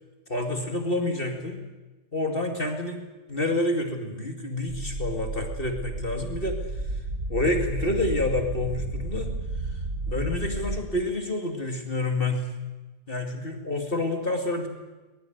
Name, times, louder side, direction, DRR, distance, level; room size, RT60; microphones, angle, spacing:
voice 1, 0.3-1.6 2.1-3.0 3.3-6.6 7.3-9.3 10.1-12.5 13.1-14.7, left 2 dB, 35° left, 4 dB, 2.6 m, -28 dB
sound 1, 4.7-10.8, right 2 dB, 80° right, 7.0 m, -32 dB
22.0 x 20.5 x 9.4 m, 1.2 s
omnidirectional pair, 1.6 m